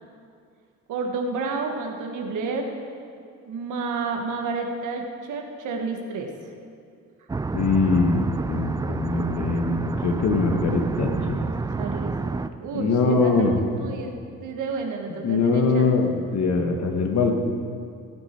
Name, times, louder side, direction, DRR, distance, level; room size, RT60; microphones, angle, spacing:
voice 1, 0.9-2.6 3.4-6.3 11.1-11.5 11.8-13.5 13.8-14.1 14.4-15.9, right 4 dB, 80° right, 3 dB, 1.5 m, -30 dB
sound 1, 7.3-12.5, right 3 dB, 15° right, 0.3 m, -29 dB
voice 2, 7.5-11.4 12.7-13.6 15.2-17.3, left 4 dB, 60° left, 3 dB, 1.6 m, -22 dB
17.0 x 8.4 x 4.5 m, 2.3 s
cardioid pair, 90°, 30 cm